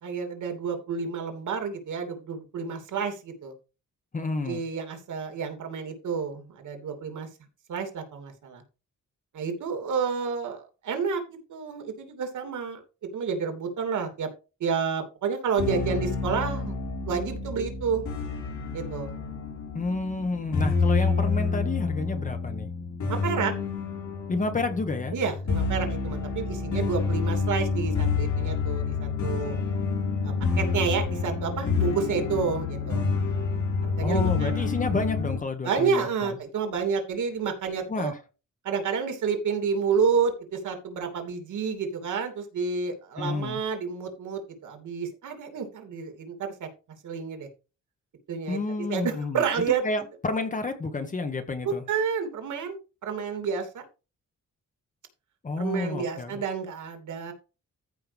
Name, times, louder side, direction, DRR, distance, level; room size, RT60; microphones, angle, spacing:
voice 1, 0.0-3.5 4.4-7.3 7.7-8.6 9.3-12.8 13.1-14.3 14.6-16.7 17.0-18.0 18.7-19.2 23.1-23.5 25.1-29.5 30.2-33.1 33.8-34.7 35.6-38.1 38.6-46.7 47.0-47.5 48.3-48.6 48.9-49.8 51.6-52.8 53.0-53.8 55.6-57.3, right 6 dB, 80° right, 2.9 m, -30 dB
voice 2, 4.1-4.6 19.7-22.7 24.3-25.1 34.0-36.4 37.9-38.2 43.2-43.6 48.5-49.4 49.8-51.8 55.4-56.4, left 3 dB, 25° left, 1.2 m, -30 dB
sound 1, 15.6-35.4, left 4 dB, 70° left, 4.5 m, -28 dB
14.5 x 5.6 x 3.5 m
wide cardioid pair, 175°, 30 cm